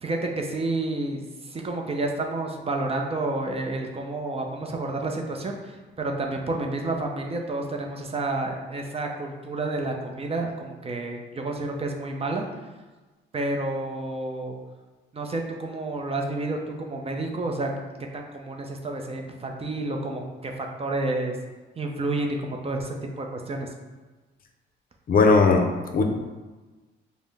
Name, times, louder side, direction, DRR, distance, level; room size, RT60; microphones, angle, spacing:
voice 1, 0.0-12.5 13.3-14.6 15.1-17.7 18.1-21.4 21.8-23.7, right 2 dB, 30° right, 2 dB, 0.5 m, -30 dB
voice 2, 25.1-26.0, left 4 dB, 45° left, 4 dB, 0.5 m, -18 dB
5.1 x 2.1 x 3.3 m, 1.2 s
cardioid pair, 90°, 20 cm